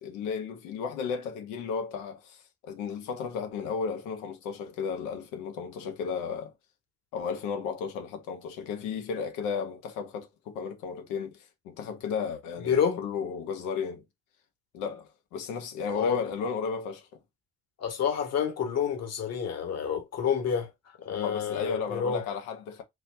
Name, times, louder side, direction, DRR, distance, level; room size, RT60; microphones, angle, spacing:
voice 1, 0.0-6.5 7.1-14.0 14.7-17.1 21.1-22.8, left 6 dB, 90° left, 1.1 m, -34 dB
voice 2, 12.7-13.0 15.9-16.2 17.8-20.7 21.0-22.2, left 7 dB, 60° left, 1.5 m, -28 dB
4.2 x 2.8 x 2.7 m
supercardioid pair, 65°, 29 cm